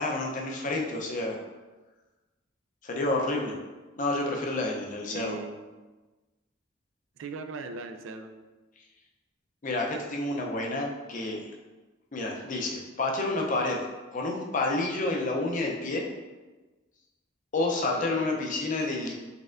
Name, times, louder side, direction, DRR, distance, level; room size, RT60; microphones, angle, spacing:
voice 1, 0.0-1.4 2.8-3.6 4.0-5.4 9.6-11.4 12.1-13.8 14.1-16.1 17.5-19.1, left 2 dB, 45° left, 0 dB, 0.5 m, -29 dB
voice 2, 5.1-5.6 7.2-8.3 17.9-18.3 18.6-18.7, right 4 dB, 90° right, 6 dB, 0.4 m, -39 dB
4.2 x 3.4 x 2.5 m, 1.2 s
head